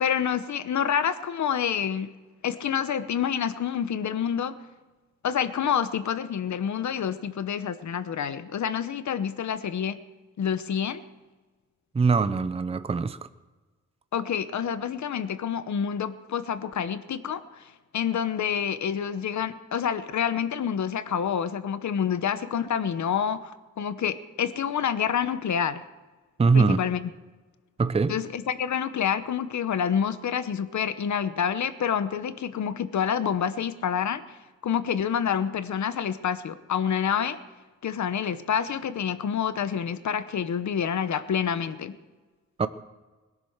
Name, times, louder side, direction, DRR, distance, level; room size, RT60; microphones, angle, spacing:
voice 1, 0.0-2.1 2.4-4.6 5.2-10.0 10.4-11.0 14.1-25.8 26.5-27.1 28.1-34.2 34.6-37.4 37.8-41.9, left 8 dB, 60° left, 13 dB, 1.0 m, -28 dB
voice 2, 11.9-13.2 26.4-26.8 27.8-28.2 42.6-42.7, right 4 dB, 20° right, 12 dB, 0.5 m, -22 dB
21.0 x 10.5 x 6.5 m, 1.3 s
wide cardioid pair, 170°, 32 cm